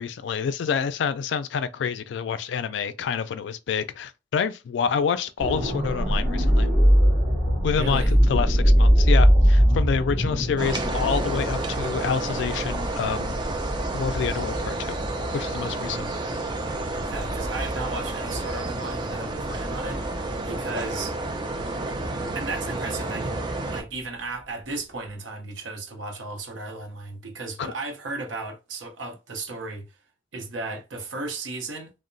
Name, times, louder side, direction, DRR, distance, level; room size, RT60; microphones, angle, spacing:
voice 1, 0.0-6.7 7.6-13.4 13.9-15.0 15.3-16.1 27.6-27.7, left 6 dB, 65° left, 0.3 m, -28 dB
sound 1, 5.4-23.3 23.6-23.8, equal, ahead, 1.3 m, -23 dB
voice 2, 7.7-8.2 16.9-20.0 20.4-21.1 22.3-23.4 23.7-29.9 30.3-31.9, right 3 dB, 75° right, 0.6 m, -35 dB
sound 2, 10.6-23.8, right 2 dB, 25° right, 0.4 m, -31 dB
2.8 x 2.0 x 2.5 m
head